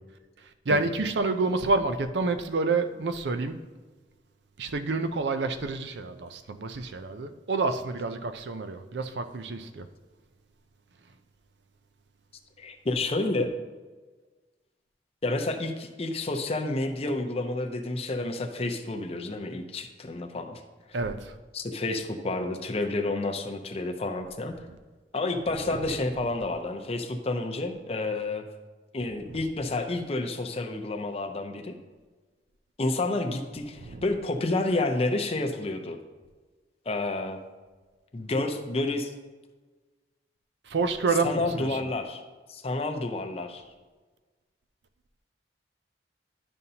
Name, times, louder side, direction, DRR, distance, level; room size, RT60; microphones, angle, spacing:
voice 1, 0.7-3.6 4.6-9.9 20.9-21.3 25.6-26.0 29.3-29.4 33.8-34.0 40.7-41.8, right 3 dB, 75° right, 9 dB, 0.5 m, -28 dB
voice 2, 12.6-13.5 15.2-20.6 21.5-24.6 25.1-28.4 28.9-31.8 32.8-36.0 36.9-37.4 38.1-39.1 41.2-42.2 42.5-43.6, left 2 dB, 35° left, 5 dB, 0.6 m, -30 dB
11.0 x 5.4 x 2.8 m, 1.3 s
head